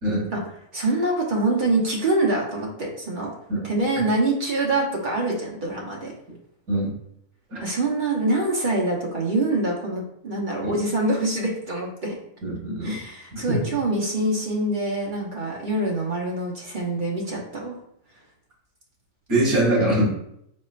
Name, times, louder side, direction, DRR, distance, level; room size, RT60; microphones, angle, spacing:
voice 1, 0.7-3.3 3.6-6.1 7.6-12.1 12.8-17.8, right 2 dB, 35° right, -3 dB, 1.1 m, -25 dB
voice 2, 12.4-13.0 13.3-13.6 19.3-20.1, right 1 dB, 75° right, -6 dB, 2.2 m, -23 dB
4.3 x 4.3 x 2.5 m, 0.75 s
omnidirectional pair, 1.5 m